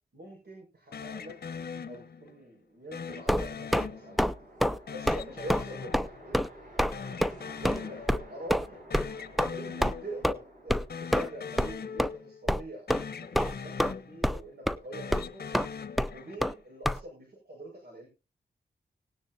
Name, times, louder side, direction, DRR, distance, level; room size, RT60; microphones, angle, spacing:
voice 1, 0.1-1.4 1.9-4.2 4.7-6.5 7.4-8.8 9.4-15.5 16.1-18.1, right 1 dB, 70° right, -1 dB, 5.7 m, -45 dB
sound 1, 0.9-2.4 2.9-4.5 4.9-6.7 6.9-8.4 8.7-10.4 10.8-12.6 12.9-14.5 14.8-16.6, left 6 dB, 65° left, 0.9 m, -41 dB
sound 2, 2.8-11.9, right 1 dB, 50° right, 7.0 m, -52 dB
sound 3, 3.3-3.9 4.2-4.3 4.6-4.8 5.1-5.2 5.5-5.6 5.9-6.1 6.3-6.5 6.8-6.9 7.2-7.3 7.6-7.8 8.1-8.2 8.5-8.7 8.9-9.1 9.4-9.5 9.8-9.9 10.2-10.3 10.7-10.8 11.1-11.3 11.6-11.7 12.0-12.1 12.5-12.6 12.9-13.0 13.3-13.9 14.2-14.4 14.7-14.8 15.1-15.2 15.5-15.7 16.0-16.1 16.4-16.5 16.8-17.0, equal, ahead, 0.6 m, -26 dB
19.0 x 9.9 x 2.7 m, 0.29 s
cardioid pair, 70°, 17 cm